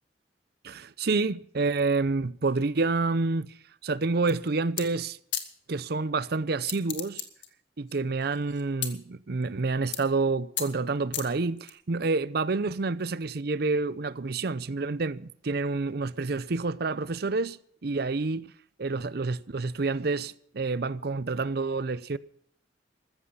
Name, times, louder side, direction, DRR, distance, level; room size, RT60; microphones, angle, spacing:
voice 1, 0.6-3.5 3.8-5.2 5.7-7.2 7.8-18.5 18.8-22.2, right 3 dB, 60° right, 0.6 m, -28 dB
sound 1, 4.2-4.5 4.8-4.9 5.3-5.5 6.6-7.5 7.9-8.9 9.4-9.6 9.9-10.2 10.6-10.7 11.1-11.7, left 11 dB, 85° left, 2.1 m, -33 dB
14.5 x 14.5 x 5.5 m
head